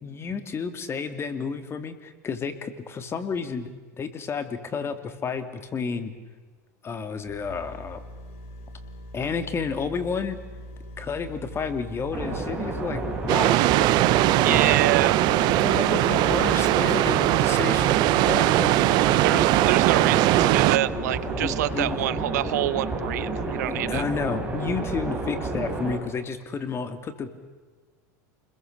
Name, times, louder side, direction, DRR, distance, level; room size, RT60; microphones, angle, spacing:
voice 1, 0.0-3.7 4.0-6.1 6.8-8.0 9.1-10.4 11.0-13.7 14.5-14.8 15.6-18.0 18.3-18.7 19.3-19.4 20.0-20.1 21.4-22.0 23.7-27.5, left 5 dB, 30° left, 9 dB, 2.9 m, -31 dB
sound 1, 7.2-21.9, equal, 70° left, 4.1 m, -43 dB
sound 2, 12.1-26.0, right 2 dB, 15° right, 7.5 m, -30 dB
sound 3, 13.3-20.8, right 18 dB, 55° right, 0.7 m, -20 dB
voice 2, 14.4-15.2 19.2-24.0, right 15 dB, 80° right, 18 dB, 1.0 m, -27 dB
29.5 x 22.0 x 6.9 m, 1.4 s
hypercardioid pair, 105°, 9 cm